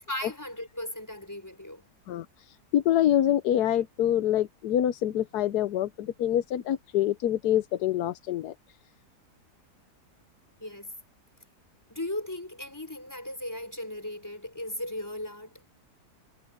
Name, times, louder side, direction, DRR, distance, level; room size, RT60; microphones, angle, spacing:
voice 1, 0.1-1.8 10.6-10.9 11.9-15.5, left 1 dB, 10° left, 4.7 m, -37 dB
voice 2, 2.1-8.5, left 11 dB, 75° left, 1.3 m, -26 dB
omnidirectional pair, 1.7 m